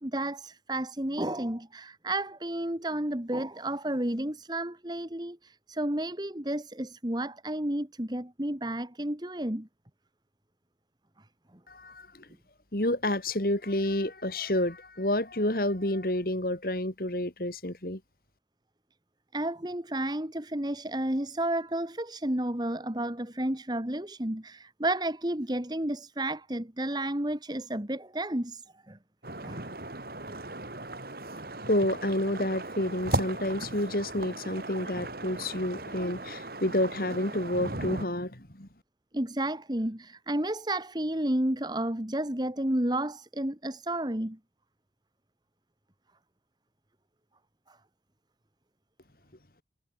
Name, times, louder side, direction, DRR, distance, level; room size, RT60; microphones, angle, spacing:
voice 1, 0.0-9.7 19.3-28.6 28.9-29.0 29.4-29.6 39.1-44.4, right 1 dB, 25° right, 1.9 m, -31 dB
voice 2, 11.7-12.1 12.7-18.0 31.7-38.7, left 1 dB, 55° left, 3.5 m, -29 dB
sound 1, 29.2-38.1, right 2 dB, 55° right, 3.0 m, -37 dB
head